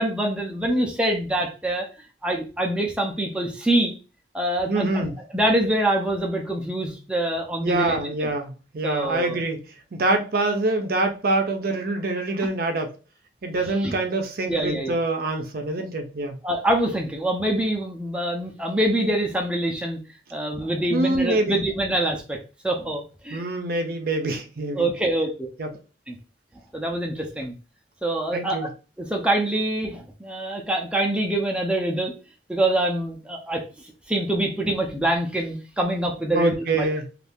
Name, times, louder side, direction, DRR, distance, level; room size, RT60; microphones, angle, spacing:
voice 1, 0.0-1.9 2.2-3.9 4.3-5.1 5.3-8.3 8.8-9.4 13.8-13.9 14.5-15.0 16.4-20.0 20.3-22.4 22.6-23.4 24.7-25.5 26.1-26.2 26.7-27.5 28.0-28.7 29.0-32.1 32.5-33.6 34.1-36.9, right 1 dB, 5° right, 0.5 m, -25 dB
voice 2, 4.7-5.2 7.6-9.6 9.9-12.9 13.4-16.4 20.9-21.6 23.3-24.9 25.6-25.7 28.3-28.7 36.3-37.1, right 2 dB, 55° right, 0.6 m, -25 dB
2.7 x 2.4 x 3.4 m
head